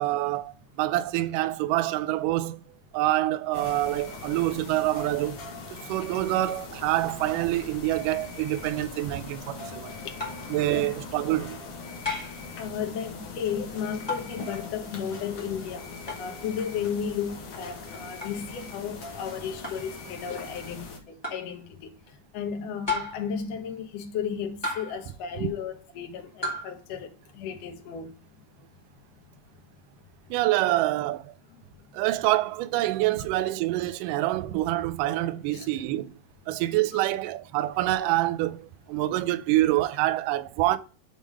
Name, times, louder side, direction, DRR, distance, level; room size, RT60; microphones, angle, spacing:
voice 1, 0.0-2.6 2.9-5.4 5.9-9.9 10.5-11.6 30.3-31.3 31.9-36.1 36.5-40.8, right 16 dB, 85° right, 1.9 m, -26 dB
sound 1, 3.5-21.0, left 4 dB, 55° left, 1.7 m, -41 dB
sound 2, 10.2-10.5 12.0-12.4 14.1-14.4 16.1-16.3 18.2-18.4 19.6-19.9 21.2-21.5 22.9-23.3 24.6-25.1 26.4-26.7, left 2 dB, 10° left, 1.2 m, -33 dB
voice 2, 12.6-15.9 16.2-21.9 22.3-27.1 27.3-28.1 35.5-35.7 36.9-37.0, left 7 dB, 80° left, 1.5 m, -34 dB
6.9 x 3.6 x 6.2 m
omnidirectional pair, 4.4 m